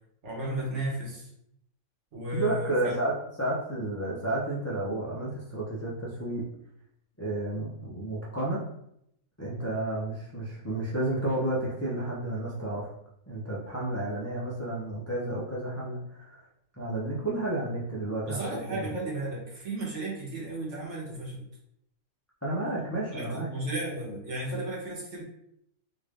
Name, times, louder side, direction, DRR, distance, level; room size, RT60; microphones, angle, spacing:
voice 1, 0.2-1.3 2.1-2.9 18.3-21.5 23.1-25.2, right 1 dB, 55° right, -3 dB, 1.3 m, -34 dB
voice 2, 2.3-3.1 3.4-6.4 7.2-8.6 9.4-12.9 13.3-16.4 16.7-18.4 18.7-18.9 22.4-23.5, right 1 dB, 20° left, -6 dB, 0.5 m, -31 dB
3.4 x 2.5 x 3.4 m, 0.74 s
omnidirectional pair, 1.5 m